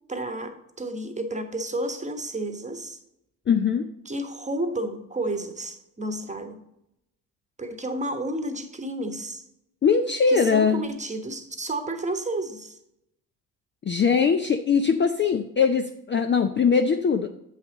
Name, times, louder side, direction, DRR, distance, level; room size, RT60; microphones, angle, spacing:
voice 1, 0.1-3.0 4.1-6.6 7.6-9.4 10.3-12.8, right 1 dB, 15° right, 7 dB, 1.2 m, -31 dB
voice 2, 3.5-3.9 9.8-10.8 13.8-17.3, left 6 dB, 25° left, 6 dB, 0.5 m, -21 dB
7.9 x 5.7 x 3.9 m, 0.82 s
hypercardioid pair, 50°, 46 cm